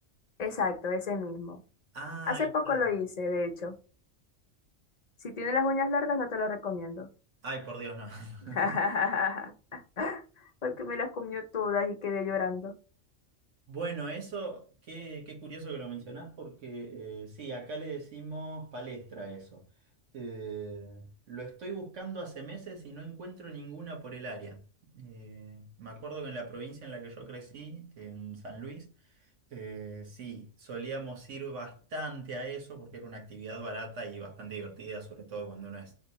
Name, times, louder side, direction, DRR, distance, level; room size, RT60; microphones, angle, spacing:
voice 1, 0.4-1.6 2.3-3.8 5.2-7.1 8.4-12.7, left 4 dB, 45° left, 0.6 m, -31 dB
voice 2, 1.9-2.7 7.4-8.6 13.7-19.6 20.1-28.9 29.5-35.9, right 3 dB, 80° right, 1.5 m, -40 dB
3.3 x 2.8 x 4.0 m
omnidirectional pair, 1.2 m